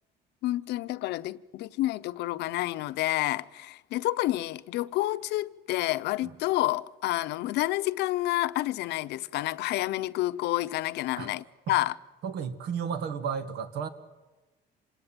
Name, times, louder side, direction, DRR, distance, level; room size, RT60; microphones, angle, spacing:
voice 1, 0.4-11.9, left 16 dB, 85° left, 0.7 m, -29 dB
voice 2, 12.2-13.9, right 7 dB, 75° right, 2.0 m, -33 dB
26.5 x 19.0 x 9.1 m
cardioid pair, 110°, 17 cm